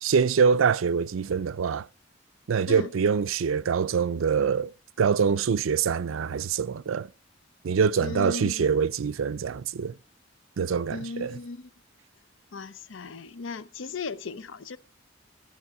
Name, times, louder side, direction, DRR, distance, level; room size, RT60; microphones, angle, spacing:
voice 1, 0.0-1.9 2.5-4.7 5.0-7.1 7.6-10.0 10.6-11.4, right 6 dB, 90° right, 0.4 m, -24 dB
voice 2, 8.0-8.7 10.9-11.7 12.5-14.8, left 4 dB, 75° left, 0.6 m, -36 dB
15.5 x 6.1 x 4.7 m
head